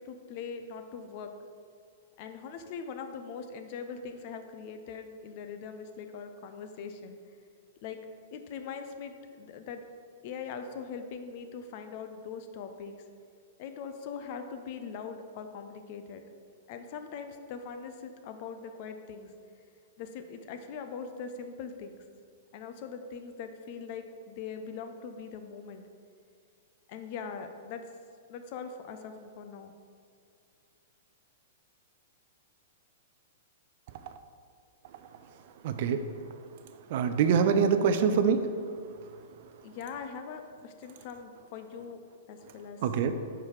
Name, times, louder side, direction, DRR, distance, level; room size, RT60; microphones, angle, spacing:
voice 1, 0.0-1.3 2.2-7.2 7.8-8.0 8.3-9.8 10.2-12.9 13.6-16.2 16.7-19.3 20.0-22.0 22.5-25.9 26.9-27.8 28.3-29.7 39.6-42.0 42.3-42.8, left 6 dB, 50° left, 7 dB, 0.5 m, -41 dB
voice 2, 35.6-36.0 36.9-38.4 42.8-43.1, right 6 dB, 55° right, 9 dB, 0.4 m, -24 dB
5.6 x 4.7 x 4.6 m, 2.2 s
hypercardioid pair, 110°, 0 cm